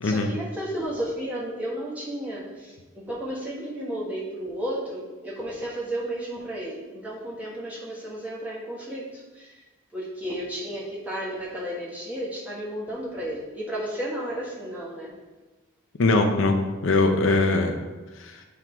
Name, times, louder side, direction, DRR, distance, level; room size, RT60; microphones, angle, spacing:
voice 1, 0.0-9.6 9.9-15.1, right 1 dB, 5° right, -6 dB, 1.3 m, -33 dB
voice 2, 16.0-16.6 16.8-17.8 18.2-18.4, left 3 dB, 65° left, 4 dB, 0.6 m, -21 dB
7.5 x 3.7 x 4.5 m, 1.2 s
head